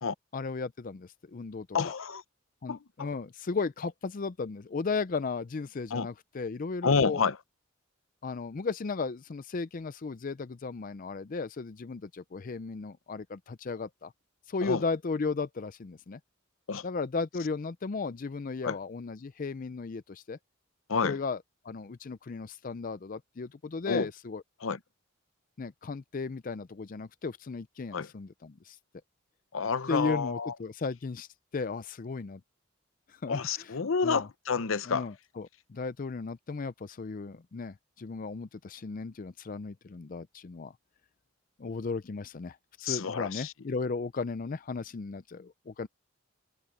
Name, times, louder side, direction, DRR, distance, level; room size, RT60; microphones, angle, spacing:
voice 1, 0.3-1.9 2.6-7.2 8.2-14.1 14.5-16.2 16.8-20.4 21.0-21.4 21.6-24.4 25.6-28.8 29.9-32.4 33.1-33.7 34.0-34.3 34.9-40.7 41.6-45.9, left 4 dB, 40° left, 0.4 m, -35 dB
voice 2, 1.7-2.2 2.7-3.1 5.9-6.1 6.8-7.4 14.6-14.8 16.7-16.8 18.6-18.8 20.9-21.2 23.9-24.1 24.6-24.8 27.9-28.1 29.5-30.5 33.3-35.1 42.8-43.5, left 5 dB, 75° left, 0.7 m, -29 dB
head